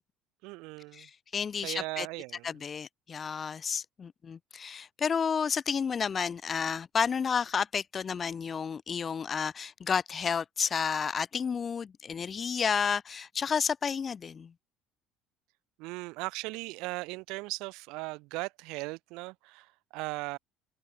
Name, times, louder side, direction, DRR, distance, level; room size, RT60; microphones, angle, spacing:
voice 1, 0.4-1.1 1.6-2.6 15.8-20.4, right 24 dB, 75° right, 3.9 m, -38 dB
voice 2, 0.9-2.1 2.4-14.5, left 6 dB, 30° left, 1.1 m, -31 dB
cardioid pair, 135°, 0 cm